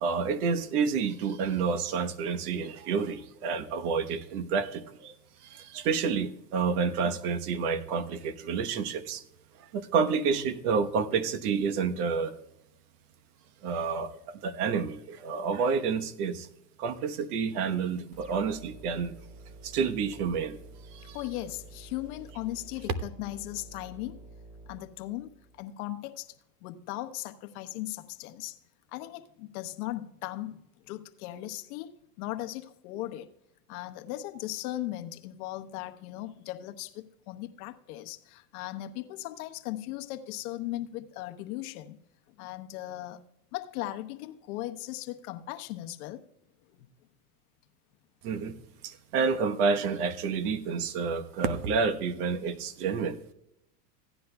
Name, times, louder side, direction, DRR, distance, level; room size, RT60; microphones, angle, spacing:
voice 1, 0.0-5.1 5.4-9.2 9.6-12.3 13.6-16.5 16.8-19.1 19.6-20.6 20.9-21.2 48.2-53.2, right 5 dB, 65° right, 10 dB, 1.2 m, -29 dB
sound 1, 18.1-25.6, right 2 dB, 15° right, 2.1 m, -50 dB
voice 2, 21.1-24.2 24.7-26.4 26.6-28.6 28.9-31.9 32.2-33.3 33.7-42.0 42.3-43.2 43.5-46.3 46.6-46.8, left 15 dB, 60° left, 7 dB, 1.0 m, -38 dB
16.0 x 10.0 x 2.3 m, 0.84 s
supercardioid pair, 120°, 48 cm